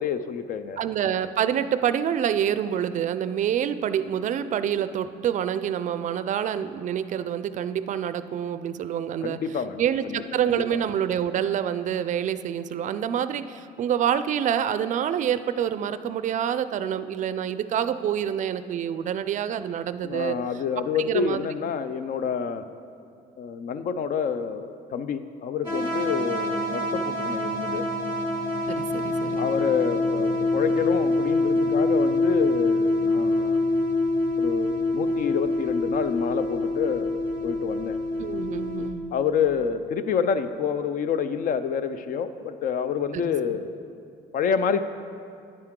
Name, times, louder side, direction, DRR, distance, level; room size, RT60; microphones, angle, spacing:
voice 1, 0.0-0.8 9.2-10.2 10.5-10.6 20.0-22.7 23.4-27.9 29.3-33.6 34.4-38.0 39.1-43.8 44.3-44.8, left 7 dB, 55° left, 11 dB, 0.4 m, -28 dB
voice 2, 0.8-9.4 9.8-20.4 21.0-21.5 28.7-29.4 38.2-39.0 43.1-43.3, right 9 dB, 50° right, 13 dB, 0.4 m, -27 dB
sound 1, 25.6-38.9, left 2 dB, 25° left, 2.3 m, -25 dB
9.7 x 9.2 x 3.7 m, 2.4 s
cardioid pair, 110°, 17 cm